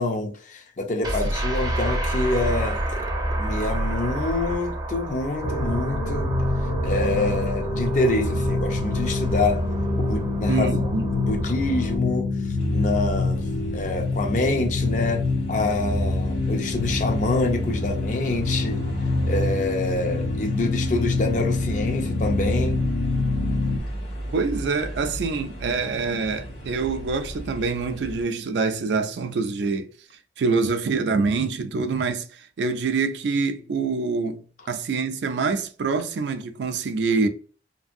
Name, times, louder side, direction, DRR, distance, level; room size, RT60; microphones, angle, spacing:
voice 1, 0.0-6.3 6.8-9.7 10.0-18.8 19.3-22.8, left 2 dB, 45° left, 0.5 m, -26 dB
sound 1, 1.0-12.0, right 1 dB, 25° right, 0.5 m, -29 dB
sound 2, 5.4-23.8, left 2 dB, 85° left, 0.6 m, -26 dB
voice 2, 10.5-11.1 24.3-29.9 30.4-32.3 32.6-37.3, right 4 dB, 80° right, 0.4 m, -25 dB
sound 3, 12.6-28.2, equal, 60° left, 1.3 m, -36 dB
2.6 x 2.5 x 2.5 m
head